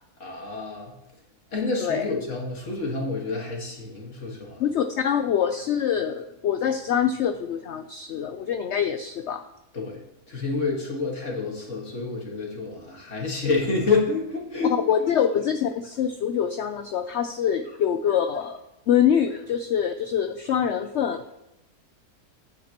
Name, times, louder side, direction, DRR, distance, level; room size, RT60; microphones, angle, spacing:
voice 1, 0.2-0.9 1.5-4.6 9.7-10.0 10.3-14.7, left 3 dB, 50° left, -1 dB, 2.0 m, -28 dB
voice 2, 1.8-2.1 4.6-9.4 14.9-18.6 18.9-21.2, left 8 dB, 70° left, 8 dB, 0.6 m, -25 dB
9.3 x 8.5 x 2.9 m, 0.87 s
omnidirectional pair, 1.7 m